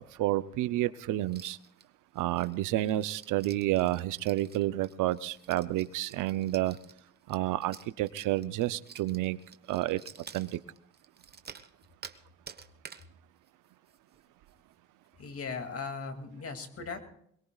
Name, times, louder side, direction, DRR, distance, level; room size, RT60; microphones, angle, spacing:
voice 1, 0.0-1.6 2.2-6.8 7.3-9.4 9.7-10.0 10.3-10.6, right 15 dB, 90° right, 0.7 m, -30 dB
sound 1, 1.2-1.8 2.2-12.2 12.5-13.1 13.5-13.6 13.9-14.2 14.5-14.6 15.1-15.2, right 6 dB, 35° right, 1.1 m, -50 dB
voice 2, 15.2-17.0, left 4 dB, 50° left, 2.5 m, -38 dB
23.5 x 21.5 x 2.4 m
cardioid pair, 90°, 30 cm